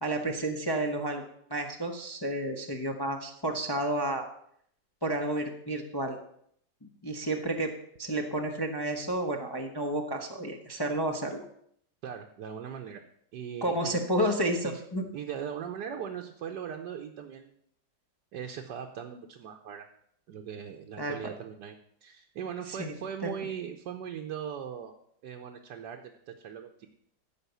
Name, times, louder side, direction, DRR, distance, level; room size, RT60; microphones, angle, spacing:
voice 1, 0.0-1.2 1.5-4.3 5.0-6.2 6.8-7.7 8.0-11.4 13.6-15.0 21.0-21.3 22.7-22.9 23.2-23.3, right 1 dB, 20° left, 2 dB, 0.7 m, -31 dB
voice 2, 12.0-13.0 13.3-14.0 14.6-14.8 15.1-17.5 18.3-19.9 20.3-21.7 22.0-24.9 25.2-26.9, right 8 dB, 70° right, 3 dB, 1.4 m, -39 dB
14.0 x 5.2 x 6.9 m, 0.69 s
omnidirectional pair, 2.0 m